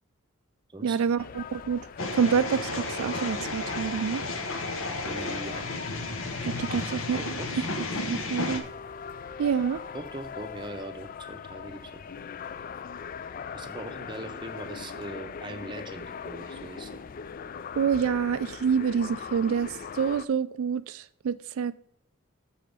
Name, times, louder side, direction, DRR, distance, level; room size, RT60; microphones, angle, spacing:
voice 1, 0.8-1.8 2.1-4.2 6.4-6.8 7.1-7.2 8.1-8.6 9.4-9.8 17.8-21.7, right 6 dB, 80° right, 0.3 m, -27 dB
sound 1, 1.2-20.2, left 6 dB, 40° left, 0.3 m, -41 dB
sound 2, 2.0-8.6, left 2 dB, 75° left, 1.2 m, -33 dB
voice 2, 5.1-5.7 6.8-7.7 9.9-12.0 13.5-17.0, right 1 dB, 20° right, 0.8 m, -41 dB
7.5 x 4.3 x 6.8 m
head